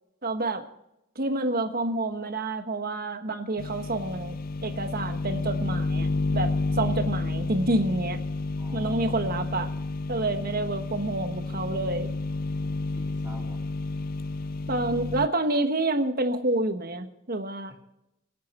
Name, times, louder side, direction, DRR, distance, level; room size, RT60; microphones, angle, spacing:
voice 1, 0.2-0.6 1.1-4.3 4.6-6.5 6.8-8.2 8.7-9.7 10.1-12.1 14.7-17.7, right 2 dB, 45° right, 7 dB, 1.3 m, -28 dB
sound 1, 3.6-15.3, left 3 dB, 45° left, 0.4 m, -30 dB
voice 2, 8.6-9.2 12.6-13.7 17.7-17.8, equal, 10° right, -5 dB, 3.7 m, -49 dB
24.5 x 8.5 x 4.4 m, 0.84 s
head